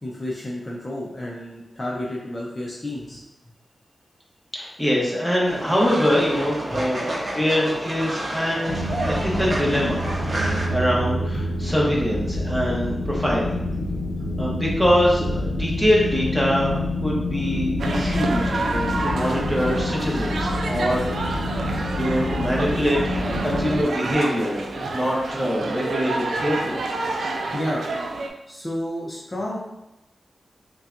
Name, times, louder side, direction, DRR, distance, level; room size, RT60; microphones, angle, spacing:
voice 1, 0.0-3.2 6.7-6.8 13.9-14.0 27.0-27.1 27.5-27.9 28.5-29.6, left 1 dB, 25° left, -4 dB, 0.6 m, -31 dB
voice 2, 4.5-7.1 7.3-8.8 9.0-13.6 14.4-21.5 22.0-26.8, equal, ahead, -5 dB, 1.1 m, -24 dB
Fowl, 5.5-10.7, right 1 dB, 45° right, 0.9 m, -30 dB
sound 1, 8.7-23.8, left 1 dB, 80° left, 0.6 m, -27 dB
sound 2, 17.8-28.3, right 3 dB, 90° right, 0.4 m, -29 dB
5.4 x 2.3 x 2.5 m, 0.93 s
wide cardioid pair, 100°, 0 cm